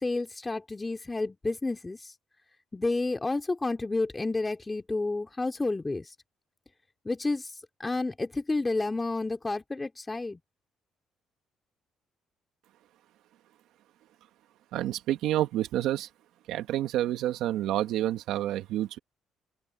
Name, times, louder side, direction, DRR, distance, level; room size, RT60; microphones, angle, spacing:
voice 1, 0.0-2.1 2.7-6.1 7.0-7.5 7.8-10.4, left 2 dB, 20° left, 3.4 m, -30 dB
voice 2, 14.7-16.1 16.5-19.0, right 13 dB, 80° right, 2.2 m, -29 dB
open air
cardioid pair, 90°, 0 cm